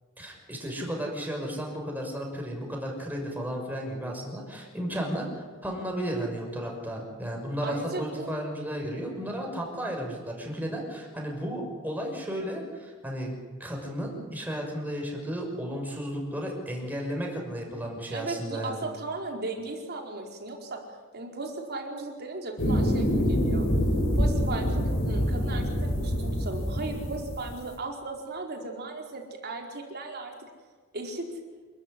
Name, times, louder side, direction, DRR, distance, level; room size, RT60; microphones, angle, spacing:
voice 1, 0.2-5.3 5.6-13.3 13.6-18.8, equal, 10° right, 0 dB, 6.3 m, -33 dB
voice 2, 7.6-8.3 18.1-20.8 21.1-23.7 24.2-30.3 30.9-31.3, right 2 dB, 50° right, 2 dB, 4.4 m, -36 dB
sound 1, 22.6-27.6, equal, 65° left, 4.3 m, -26 dB
28.0 x 13.5 x 9.9 m, 1.5 s
head